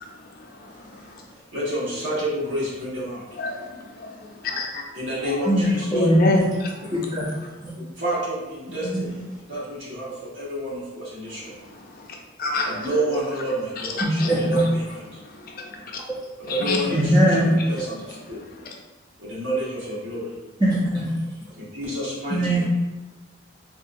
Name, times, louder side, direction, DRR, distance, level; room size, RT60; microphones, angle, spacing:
voice 1, 0.0-1.2 3.4-4.9 5.3-5.4 5.9-6.7 11.8-12.1 12.4-12.7 14.0-14.3 15.3-16.0 16.5-16.8 18.6-18.7, left 2 dB, 45° left, 1 dB, 0.4 m, -28 dB
voice 2, 1.5-3.2 4.9-6.1 8.0-9.2 9.4-11.5 12.6-15.2 16.4-18.4 19.2-20.4 21.5-22.6, right 1 dB, 70° right, -8 dB, 1.3 m, -29 dB
voice 3, 5.5-6.5 6.9-7.3 7.6-7.7 8.8-9.1 14.0-14.6 16.1-16.2 16.9-17.6 20.6-21.2 22.3-22.6, right 1 dB, 20° right, -7 dB, 0.4 m, -21 dB
3.7 x 2.5 x 2.5 m, 1.1 s
head